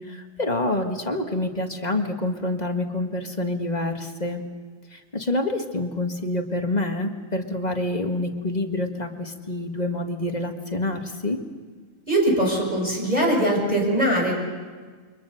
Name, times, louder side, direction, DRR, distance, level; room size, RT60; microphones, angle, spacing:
voice 1, 0.0-4.4 4.9-11.4, left 1 dB, 30° left, 4 dB, 1.9 m, -27 dB
voice 2, 12.1-14.3, right 1 dB, 30° right, -1 dB, 6.7 m, -21 dB
29.0 x 24.5 x 6.5 m, 1.5 s
omnidirectional pair, 1.4 m